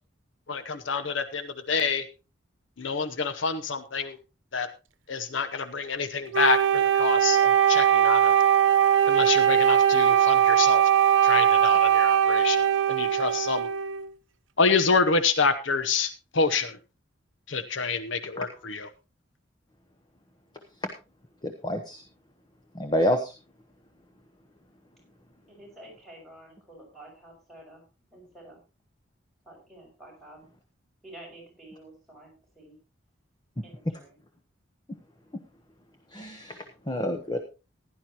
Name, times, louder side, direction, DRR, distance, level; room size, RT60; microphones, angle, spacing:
voice 1, 0.5-2.1 2.8-4.2 4.5-4.7 5.1-8.4 9.1-10.9 11.2-13.7 14.6-16.8 17.5-18.9, left 4 dB, 80° left, 10 dB, 0.9 m, -27 dB
Wind instrument woodwind instrument, 6.3-14.0, right 9 dB, 80° right, 0.9 m, -20 dB
voice 2, 21.4-22.0 22.7-23.3 36.1-37.4, left 1 dB, 20° left, 6 dB, 1.0 m, -28 dB
voice 3, 25.5-27.9 28.1-28.6 29.4-30.5 31.0-32.8 33.6-34.2, right 1 dB, ahead, -2 dB, 6.3 m, -49 dB
16.0 x 11.0 x 2.9 m, 0.30 s
head